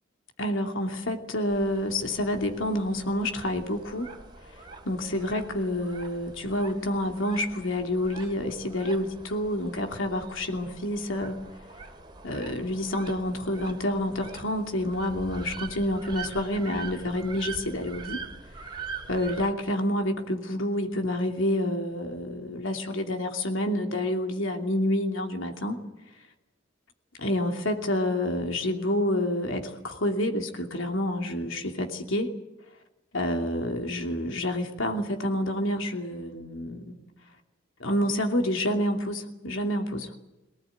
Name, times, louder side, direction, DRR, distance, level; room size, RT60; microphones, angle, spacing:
voice 1, 0.4-4.1 4.8-11.4 12.2-18.2 19.1-25.8 27.2-32.3 33.1-36.9 37.8-40.1, left 1 dB, 80° left, 4 dB, 2.8 m, -28 dB
sound 1, 1.5-19.5, right 4 dB, 25° right, 2.7 m, -43 dB
23.5 x 19.0 x 9.1 m, 0.98 s
head